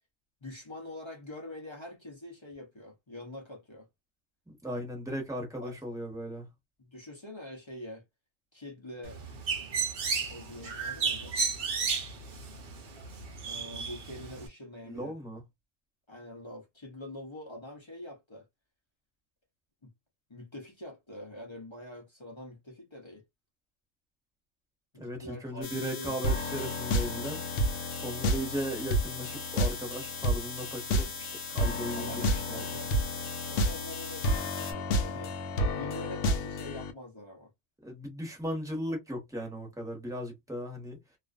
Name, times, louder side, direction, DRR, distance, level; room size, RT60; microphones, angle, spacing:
voice 1, 0.4-3.9 5.6-5.8 6.8-8.0 8.5-9.2 10.3-11.3 13.5-15.1 16.1-18.5 19.8-19.9 20.3-23.2 24.9-26.4 31.9-32.9 33.4-35.3 35.7-37.5, left 1 dB, 35° left, 0.5 m, -45 dB
voice 2, 4.5-6.5 14.9-15.4 25.0-27.4 27.9-32.6 37.8-41.0, equal, 5° right, 0.9 m, -37 dB
Bird, 9.0-14.5, right 5 dB, 50° right, 0.8 m, -33 dB
sound 1, 25.6-34.7, left 5 dB, 90° left, 1.2 m, -41 dB
sound 2, 26.2-36.9, equal, 70° left, 0.8 m, -31 dB
2.4 x 2.4 x 2.3 m
omnidirectional pair, 1.4 m